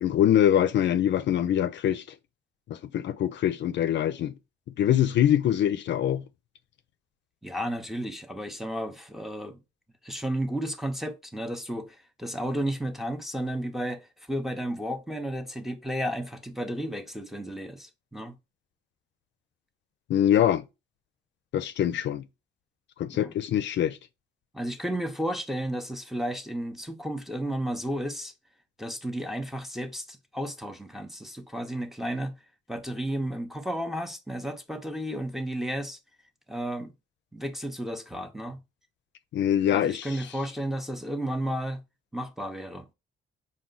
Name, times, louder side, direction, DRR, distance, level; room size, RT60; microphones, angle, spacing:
voice 1, 0.0-2.0 2.7-4.3 4.8-6.2 20.1-20.6 21.5-22.2 23.0-24.0 39.3-40.1, left 10 dB, 65° left, 0.4 m, -24 dB
voice 2, 7.4-9.6 10.0-18.4 23.1-23.3 24.5-28.3 28.8-32.3 32.7-36.0 36.5-36.9 37.3-38.6 39.7-41.8 42.1-42.9, equal, ahead, 0.6 m, -33 dB
4.5 x 2.3 x 3.7 m
cardioid pair, 90°, 20 cm